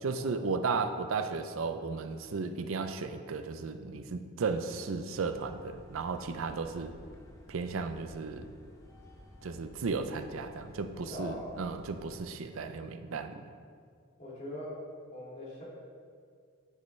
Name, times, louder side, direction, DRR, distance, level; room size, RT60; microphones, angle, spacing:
voice 1, 0.0-6.9 7.5-8.5 9.4-13.4, right 4 dB, 70° right, 8 dB, 0.5 m, -35 dB
sound 1, 5.1-12.2, equal, 15° left, 0.8 m, -54 dB
voice 2, 11.1-11.5 14.2-14.8 15.1-15.6, left 1 dB, 35° left, -6 dB, 2.2 m, -41 dB
9.6 x 6.7 x 3.2 m, 2.1 s
head